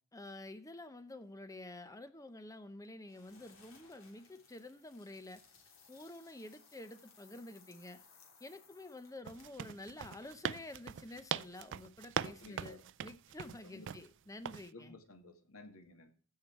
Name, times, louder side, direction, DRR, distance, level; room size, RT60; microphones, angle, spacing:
voice 1, 0.1-5.4 5.9-8.0 8.4-15.0, left 2 dB, 15° left, 0.7 m, -49 dB
sound 1, 3.1-9.6, left 5 dB, 65° left, 3.2 m, -63 dB
sound 2, 9.3-14.1 14.5-14.7, right 8 dB, 55° right, 0.4 m, -41 dB
voice 2, 12.2-12.8 13.6-13.9 14.7-16.1, left 2 dB, 85° left, 1.9 m, -54 dB
15.5 x 5.7 x 4.5 m
head